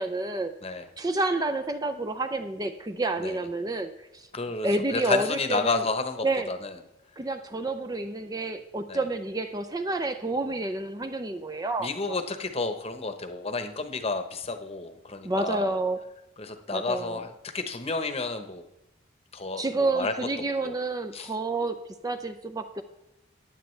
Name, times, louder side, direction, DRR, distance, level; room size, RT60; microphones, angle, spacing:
voice 1, 0.0-0.5 1.0-4.3 4.6-5.8 6.2-6.5 7.2-11.9 15.2-16.0 16.7-17.2 19.6-22.8, right 2 dB, 20° right, 8 dB, 0.5 m, -29 dB
voice 2, 4.3-6.7 8.9-9.0 11.8-15.7 16.4-18.6 19.3-20.1 20.6-20.7 21.1-21.3, left 3 dB, 30° left, 8 dB, 0.9 m, -31 dB
15.0 x 10.0 x 3.2 m, 0.95 s
head